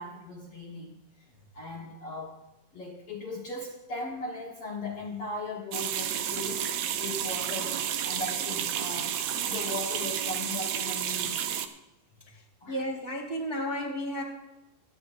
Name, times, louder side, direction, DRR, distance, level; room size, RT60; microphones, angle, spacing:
voice 1, 0.0-2.4 2.7-11.5 12.1-12.2 12.6-12.8, left 2 dB, 55° left, -2 dB, 1.8 m, -38 dB
sound 1, 5.7-11.7, right 9 dB, 75° right, 1.7 m, -31 dB
voice 2, 12.7-14.2, equal, 25° right, -1 dB, 1.4 m, -33 dB
27.0 x 10.0 x 2.6 m, 0.95 s
omnidirectional pair, 4.2 m